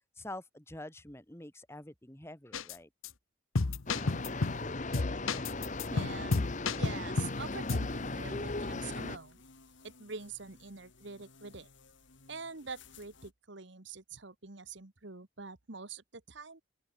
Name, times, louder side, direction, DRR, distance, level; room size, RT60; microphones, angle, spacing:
voice 1, 0.2-2.9, left 1 dB, 10° left, 2.0 m, -46 dB
sound 1, 2.5-2.8 3.0-3.1 3.6-4.6 4.9-7.4 7.7-7.9, left 3 dB, 80° left, 0.9 m, -31 dB
sound 2, 3.9-9.2, left 2 dB, 35° left, 1.2 m, -37 dB
voice 2, 5.9-6.5 6.8-9.4 9.8-11.7 12.3-16.6, right 4 dB, 60° right, 1.5 m, -45 dB
sound 3, 7.2-13.3, left 4 dB, 60° left, 4.1 m, -59 dB
open air
head